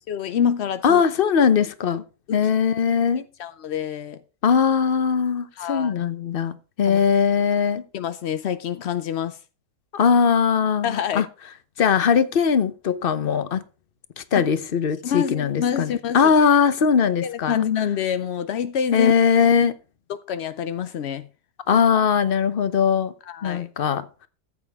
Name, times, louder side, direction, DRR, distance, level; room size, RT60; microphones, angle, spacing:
voice 1, 0.1-1.0 2.3-2.4 3.4-4.2 5.6-5.9 6.9-7.0 7.9-9.4 10.8-11.3 14.3-14.5 15.0-16.3 17.2-19.1 20.1-21.3 23.3-23.7, left 8 dB, 80° left, 0.5 m, -26 dB
voice 2, 0.8-2.0 2.3-3.3 4.4-7.8 9.9-11.3 11.8-13.6 14.2-17.6 18.9-19.7 21.7-23.1 23.4-24.1, left 6 dB, 45° left, 0.7 m, -20 dB
14.0 x 8.5 x 3.5 m
omnidirectional pair, 1.9 m